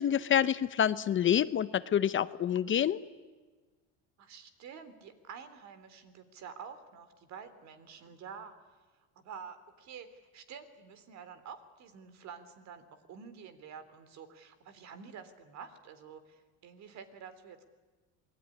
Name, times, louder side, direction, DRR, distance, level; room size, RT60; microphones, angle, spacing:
voice 1, 0.0-3.0, left 9 dB, 35° left, 14 dB, 0.9 m, -27 dB
voice 2, 4.2-8.5 8.9-17.6, right 6 dB, 55° right, 11 dB, 3.4 m, -49 dB
27.0 x 20.5 x 9.9 m, 1.3 s
cardioid pair, 115°, 33 cm